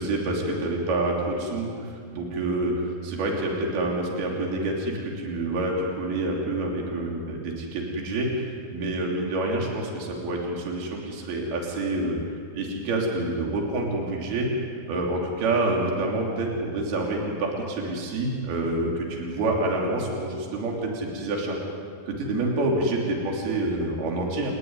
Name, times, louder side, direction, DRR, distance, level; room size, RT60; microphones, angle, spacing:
voice 1, 0.0-8.4 8.7-12.2 12.5-14.5 14.9-21.6 22.1-24.5, right 2 dB, 70° right, -1 dB, 5.2 m, -27 dB
30.0 x 15.5 x 9.8 m, 2.2 s
omnidirectional pair, 4.7 m